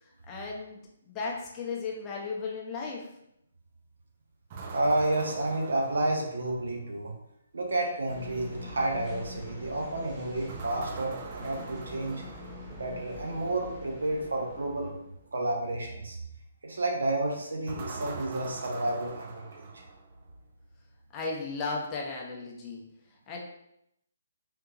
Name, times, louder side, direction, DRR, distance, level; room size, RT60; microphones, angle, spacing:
voice 1, 0.0-3.1 21.1-22.8 23.3-23.4, left 4 dB, 20° left, -2 dB, 0.6 m, -35 dB
sound 1, 4.5-6.8 10.5-13.0 17.7-20.3, right 4 dB, 35° right, 0.4 m, -43 dB
voice 2, 4.7-7.1 7.5-12.2 12.7-15.0 15.3-16.2 16.6-19.7, right 2 dB, 65° right, 0 dB, 0.8 m, -30 dB
almost empty metro station in Paris, 8.1-15.4, left 1 dB, 15° right, 0.8 m, -44 dB
3.6 x 2.7 x 2.5 m, 0.78 s
figure-of-eight pair, 135°, 0 cm